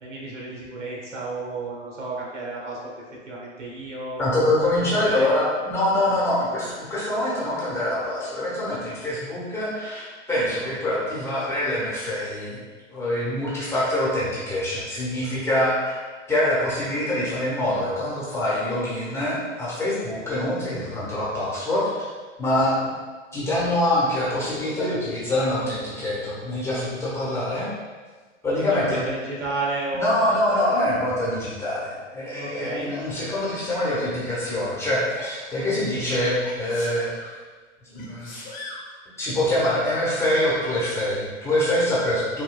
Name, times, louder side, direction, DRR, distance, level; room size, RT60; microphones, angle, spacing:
voice 1, 0.0-2.9 3.3-4.2 4.8-5.3 28.7-30.8 32.4-32.9, right 2 dB, 65° right, -3 dB, 1.2 m, -32 dB
voice 2, 4.2-12.6 12.9-16.0 16.3-22.1 22.4-22.9 23.3-27.7 28.4-29.0 29.9-37.1 37.9-38.3 39.2-42.4, left 1 dB, 5° left, -8 dB, 1.0 m, -25 dB
Sneeze, 35.1-35.4 36.4-37.3 38.0-38.9 40.2-40.3, left 2 dB, 20° left, 0.7 m, -39 dB
5.6 x 2.2 x 2.3 m, 1.4 s
figure-of-eight pair, 110°, 38 cm